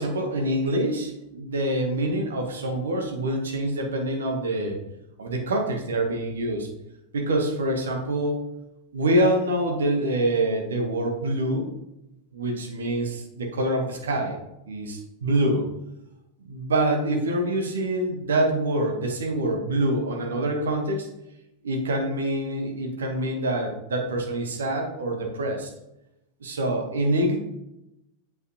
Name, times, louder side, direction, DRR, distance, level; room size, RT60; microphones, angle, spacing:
voice 1, 0.0-4.8 5.2-6.7 7.1-8.4 8.9-11.7 12.3-14.4 14.7-15.7 16.4-21.1 21.6-25.7 26.4-27.4, right 1 dB, 65° right, 2 dB, 1.1 m, -25 dB
8.1 x 4.7 x 2.9 m, 0.91 s
figure-of-eight pair, 90°, 0 cm